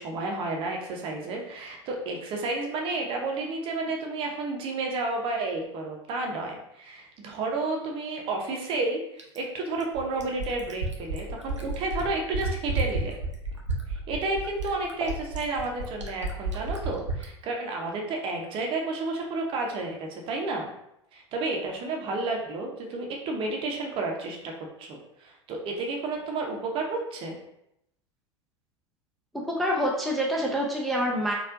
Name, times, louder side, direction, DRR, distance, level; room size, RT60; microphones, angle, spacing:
voice 1, 0.0-13.2 13.9-20.7 21.1-24.5 24.8-27.4, right 3 dB, 40° right, 1 dB, 0.7 m, -31 dB
Fill (with liquid), 9.2-17.3 18.6-18.7, right 2 dB, 90° right, 0.6 m, -31 dB
voice 2, 29.5-31.3, equal, ahead, -2 dB, 0.5 m, -26 dB
4.2 x 2.4 x 2.5 m, 0.80 s
figure-of-eight pair, 80°, 15 cm